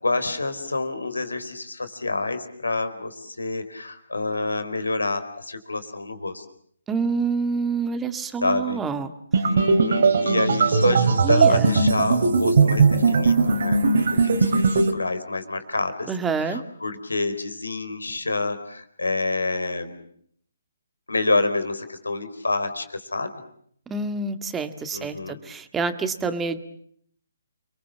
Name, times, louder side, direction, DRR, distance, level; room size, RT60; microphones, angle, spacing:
voice 1, 0.0-6.5 8.4-8.8 9.5-16.1 16.4-20.0 21.1-23.3 24.9-25.4, left 3 dB, 85° left, 10 dB, 4.2 m, -28 dB
voice 2, 6.9-9.1 11.2-11.9 16.1-16.6 23.9-26.6, right 4 dB, 10° right, 9 dB, 1.9 m, -27 dB
sound 1, 9.3-14.9, right 4 dB, 60° right, 3.9 m, -19 dB
29.5 x 22.5 x 7.4 m, 0.65 s
figure-of-eight pair, 140°, 0 cm